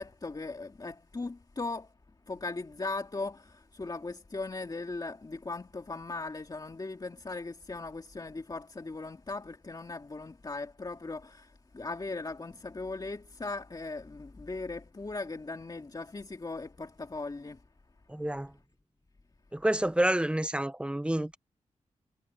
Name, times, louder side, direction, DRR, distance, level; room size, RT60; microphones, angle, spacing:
voice 1, 0.0-1.9 2.3-17.6, left 3 dB, 35° left, 2.5 m, -38 dB
voice 2, 18.1-18.5 19.5-21.4, right 1 dB, 10° right, 0.9 m, -28 dB
wide cardioid pair, 80°, 12 cm